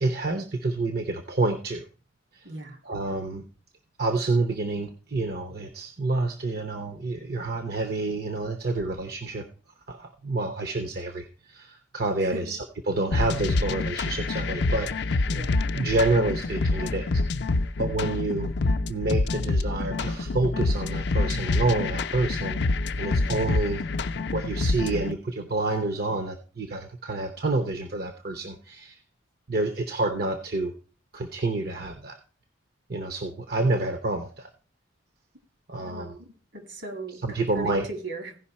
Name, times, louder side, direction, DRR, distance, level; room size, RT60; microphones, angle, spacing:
voice 1, 0.0-1.9 2.3-2.5 2.8-3.4 4.0-9.4 9.9-12.6 12.9-15.3 15.7-17.2 17.8-18.5 18.9-22.6 23.0-23.9 24.3-29.0 29.5-30.7 31.1-32.2 32.9-34.5 35.7-36.2 37.2-37.9, right 2 dB, 50° right, 0.8 m, -28 dB
voice 2, 2.4-2.8 12.2-12.6 15.3-15.6 35.8-38.4, right 2 dB, 70° right, 2.1 m, -38 dB
sound 1, 13.1-25.1, left 3 dB, 60° left, 0.5 m, -26 dB
16.0 x 5.4 x 4.3 m
head